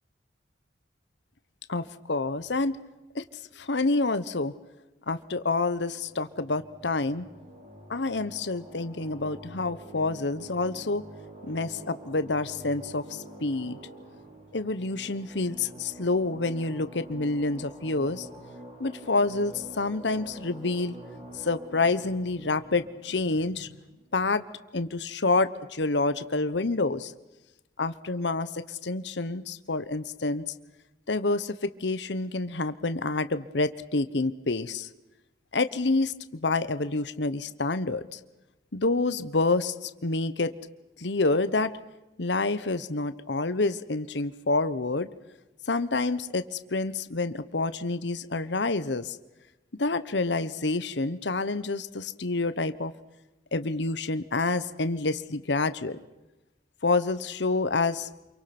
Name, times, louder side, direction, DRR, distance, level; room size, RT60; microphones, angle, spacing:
voice 1, 1.7-2.8 3.1-3.2 3.6-4.5 5.1-7.3 7.9-11.0 11.4-13.8 14.5-18.3 18.8-21.0 21.3-23.7 24.1-24.4 24.7-27.1 27.8-30.4 31.1-34.9 35.5-38.2 38.7-40.5 41.0-41.7 42.2-45.1 45.7-49.2 49.8-52.9 53.5-56.0 56.8-58.1, left 3 dB, 75° left, 13 dB, 1.1 m, -28 dB
sound 1, 5.9-24.0, right 1 dB, 35° right, 5.6 m, -47 dB
27.5 x 23.5 x 6.1 m, 1.0 s
head